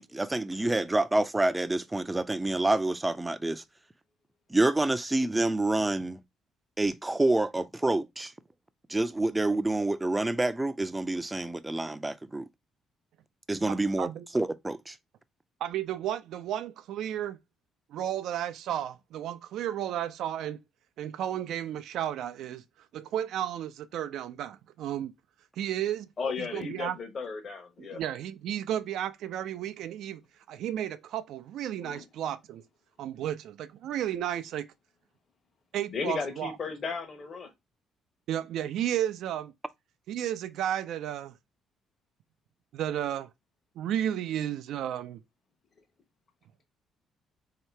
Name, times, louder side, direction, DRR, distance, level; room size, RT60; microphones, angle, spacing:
voice 1, 0.0-3.6 4.5-6.2 6.8-8.3 8.9-12.5 13.5-14.1 14.3-15.0, right 2 dB, 15° right, 0.5 m, -27 dB
voice 2, 13.7-14.3 15.6-17.4 17.9-20.6 21.0-22.6 22.9-25.1 25.6-26.1 26.4-27.0 27.8-30.2 30.5-32.6 33.0-34.7 35.7-36.6 38.3-39.5 40.1-41.3 42.7-43.3 43.8-45.2, right 11 dB, 75° right, 0.4 m, -33 dB
voice 3, 26.2-28.0 31.9-32.0 35.9-37.5, left 5 dB, 45° left, 1.0 m, -35 dB
3.1 x 2.9 x 4.5 m
cardioid pair, 90°, 0 cm